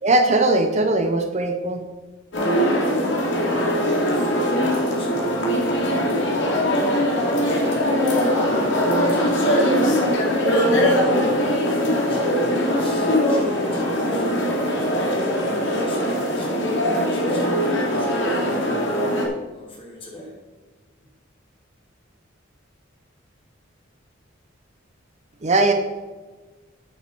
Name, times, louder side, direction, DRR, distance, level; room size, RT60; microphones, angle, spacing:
voice 1, 0.0-1.8 25.4-25.7, right 2 dB, 35° right, 6 dB, 0.6 m, -19 dB
sound 1, 2.3-19.3, equal, 60° left, 2.4 m, -21 dB
voice 2, 4.6-6.4 6.8-10.0 10.6-15.1 15.6-16.5 16.9-18.9 19.5-20.3, left 1 dB, 25° left, -4 dB, 2.9 m, -39 dB
8.3 x 7.9 x 4.6 m, 1.3 s
head